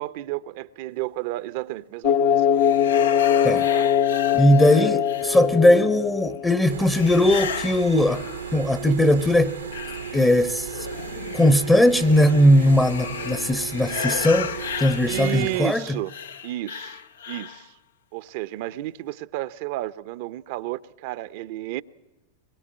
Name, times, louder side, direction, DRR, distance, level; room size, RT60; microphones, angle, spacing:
voice 1, 0.0-2.5 3.7-3.9 15.1-16.1 16.4-17.0 17.3-17.8 18.1-21.8, right 16 dB, 55° right, 0.7 m, -32 dB
sound 1, 2.0-6.8, left 9 dB, 55° left, 1.0 m, -21 dB
sound 2, 2.6-5.7 6.8-8.8 9.2-17.7, left 7 dB, 75° left, 0.7 m, -35 dB
voice 2, 4.3-8.3 8.5-9.6 10.1-10.9 11.3-16.0, left 1 dB, 10° left, 0.8 m, -19 dB
sound 3, 6.7-15.6, right 8 dB, 85° right, 1.1 m, -35 dB
23.0 x 21.5 x 7.7 m
hypercardioid pair, 100°, 0 cm